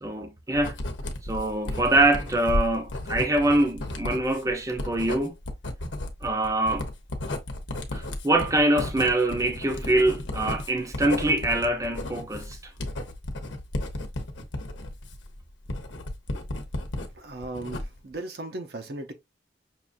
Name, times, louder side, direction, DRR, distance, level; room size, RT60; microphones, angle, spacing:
voice 1, 0.0-0.8 1.3-5.3 6.2-6.8 7.9-12.6, right 2 dB, 15° right, 0.6 m, -24 dB
Writing, 0.6-17.1 17.4-18.1, left 1 dB, 85° left, 0.9 m, -33 dB
voice 2, 17.1-19.1, right 2 dB, 60° right, 0.7 m, -36 dB
5.7 x 2.5 x 2.5 m
head